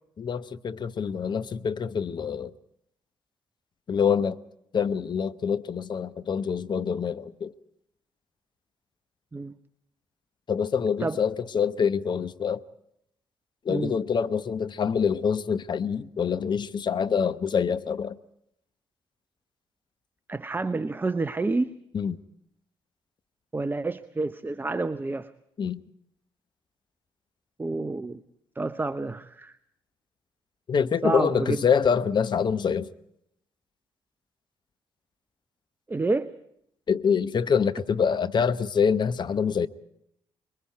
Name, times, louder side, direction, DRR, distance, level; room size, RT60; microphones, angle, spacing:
voice 1, 0.2-2.5 3.9-4.4 4.7-7.5 10.5-12.6 13.6-18.2 21.9-22.2 25.6-25.8 30.7-32.9 36.9-39.7, left 6 dB, 35° left, 0.9 m, -25 dB
voice 2, 20.3-21.7 23.5-25.3 27.6-28.2 28.6-29.5 31.0-31.6 35.9-36.3, right 3 dB, 15° right, 0.7 m, -28 dB
26.0 x 22.0 x 4.7 m
figure-of-eight pair, 45°, 12 cm